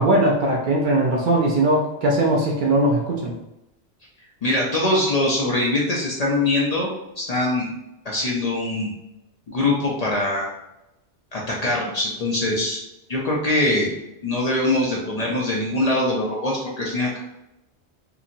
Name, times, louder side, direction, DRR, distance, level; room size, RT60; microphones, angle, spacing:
voice 1, 0.0-3.3, right 1 dB, 60° right, -1 dB, 0.6 m, -20 dB
voice 2, 4.4-6.9 7.2-7.7 8.0-8.9 9.5-10.5 11.3-12.8 13.1-13.9 14.2-17.2, left 2 dB, 50° left, -3 dB, 0.5 m, -22 dB
2.8 x 2.8 x 2.5 m, 0.87 s
omnidirectional pair, 1.1 m